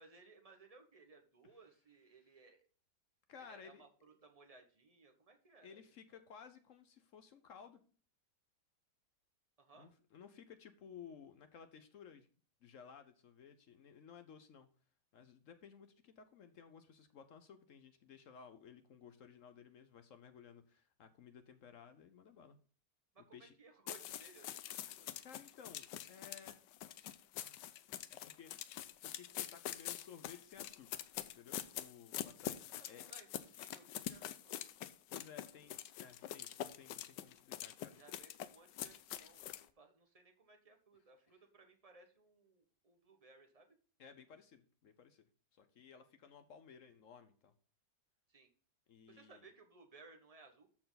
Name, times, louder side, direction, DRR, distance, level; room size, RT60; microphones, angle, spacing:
voice 1, 0.0-2.6 3.4-5.8 6.1-6.2 9.6-9.9 23.1-25.2 32.8-34.6 37.9-43.8 48.3-48.5 49.1-50.7, right 4 dB, 25° right, 4 dB, 1.1 m, -62 dB
voice 2, 3.3-3.9 5.6-7.8 9.8-12.3 12.6-14.7 15.1-22.6 23.3-23.5 25.2-26.6 27.3-27.6 28.1-28.5 28.8-30.9 31.2-33.1 35.1-38.0 44.0-45.3 45.6-47.5 48.9-49.4, left 7 dB, 60° left, 9 dB, 0.9 m, -57 dB
sound 1, 23.9-39.7, left 12 dB, 85° left, 1.2 m, -45 dB
13.5 x 4.5 x 4.0 m, 0.41 s
omnidirectional pair, 1.9 m